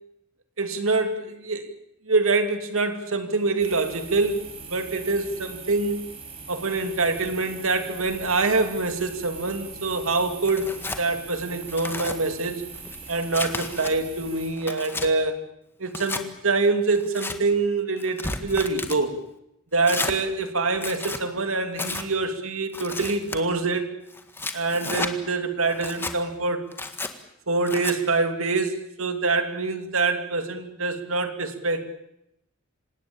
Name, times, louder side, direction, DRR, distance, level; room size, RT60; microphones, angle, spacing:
voice 1, 0.6-1.7 2.1-6.0 6.5-12.6 13.1-15.4 15.8-19.1 19.7-23.9 24.5-26.7 27.5-31.9, right 3 dB, 90° right, 7 dB, 2.7 m, -25 dB
sound 1, 3.6-14.5, right 4 dB, 30° right, 5.1 m, -41 dB
Tearing, 10.4-11.0 11.6-12.2 12.7-13.9 14.4-15.1 15.9-16.2 16.9-17.4 18.0-19.0 19.8-20.2 20.7-21.2 21.8-22.1 22.7-23.4 24.1-25.1 25.7-26.2 26.7-27.1 27.7-28.0, left 2 dB, 10° left, 1.7 m, -32 dB
26.5 x 17.5 x 8.7 m, 0.82 s
head